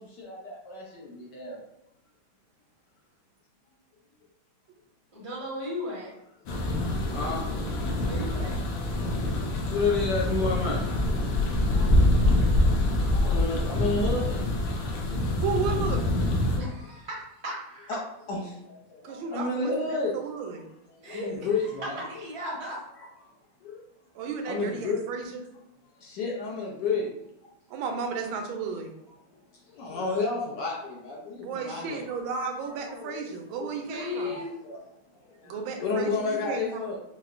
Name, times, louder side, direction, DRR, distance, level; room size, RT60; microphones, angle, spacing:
voice 1, 0.0-1.6 7.1-7.7 9.6-11.9 12.2-14.4 17.9-18.0 18.3-20.2 20.9-22.0 23.0-23.1 23.6-23.8 24.5-25.0 26.0-27.1 27.4-27.5 29.7-32.5 32.7-34.8 35.1-37.0, left 3 dB, 70° left, -2 dB, 1.1 m, -32 dB
voice 2, 5.1-6.1 8.0-8.6 11.6-12.0 16.5-17.9 21.0-22.7 33.7-34.5, left 1 dB, 25° right, -6 dB, 0.5 m, -36 dB
sound 1, 6.5-16.6, left 1 dB, 90° left, 1.5 m, -25 dB
voice 3, 15.4-16.1 19.0-19.7 20.1-20.7 24.1-25.4 27.7-28.9 31.4-34.3 35.4-36.6, right 5 dB, 75° right, 4 dB, 1.3 m, -33 dB
4.6 x 2.1 x 2.4 m, 0.84 s
omnidirectional pair, 2.3 m